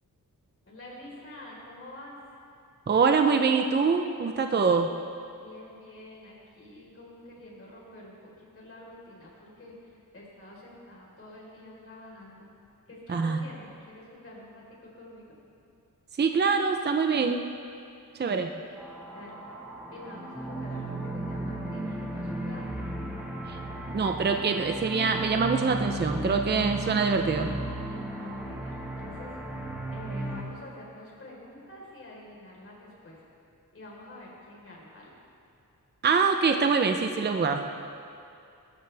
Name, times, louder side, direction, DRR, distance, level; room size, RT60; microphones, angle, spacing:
voice 1, 0.6-2.2 5.3-12.5 12.9-15.3 18.3-18.4 19.1-19.4 19.9-22.6 28.2-29.4 29.9-33.2 33.7-35.1, left 1 dB, 40° left, -4 dB, 4.2 m, -47 dB
voice 2, 2.9-4.9 13.1-13.4 16.2-17.4 18.2-18.5 23.5-23.6 23.9-27.5 36.0-37.7, right 5 dB, 30° right, 5 dB, 0.6 m, -24 dB
sound 1, 18.8-30.4, right 1 dB, 5° right, 1.7 m, -35 dB
20.5 x 14.0 x 3.4 m, 2.5 s
wide cardioid pair, 130°, 34 cm